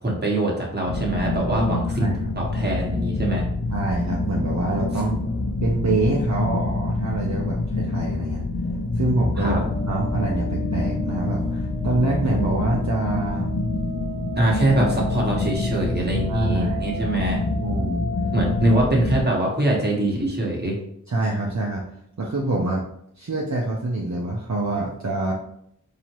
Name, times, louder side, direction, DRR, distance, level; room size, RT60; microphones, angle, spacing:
voice 1, 0.0-2.1 2.4-3.4 9.4-9.6 14.4-17.4 18.3-20.8, right 1 dB, 30° right, -2 dB, 1.3 m, -23 dB
sound 1, 0.8-19.2, left 2 dB, 55° left, 0.5 m, -26 dB
voice 2, 1.9-2.2 3.7-5.2 5.6-8.4 8.9-13.5 16.3-16.8 17.6-18.1 21.1-21.9 22.2-22.8 23.2-25.3, right 2 dB, 55° right, -3 dB, 0.7 m, -25 dB
sound 2, 9.7-18.7, right 1 dB, 15° left, 0.8 m, -36 dB
4.2 x 2.9 x 3.0 m, 0.71 s
wide cardioid pair, 50°, 33 cm